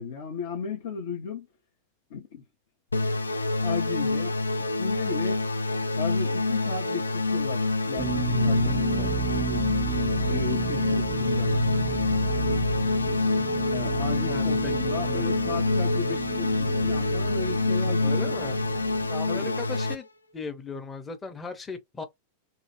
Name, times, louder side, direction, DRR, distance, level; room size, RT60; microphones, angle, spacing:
voice 1, 0.0-1.5 2.1-2.4 3.6-4.4 4.8-5.5 6.0-9.6 10.3-11.5 13.7-18.5 19.3-19.6, left 5 dB, 55° left, 0.7 m, -35 dB
sound 1, 2.9-20.0, left 2 dB, 80° left, 0.3 m, -26 dB
sound 2, 8.0-19.1, right 6 dB, 20° right, 0.5 m, -34 dB
voice 2, 14.3-14.7 15.0-15.3 18.0-18.6 19.1-20.1 20.3-22.0, left 4 dB, 15° left, 0.7 m, -37 dB
2.6 x 2.3 x 2.9 m
figure-of-eight pair, 90°, 0 cm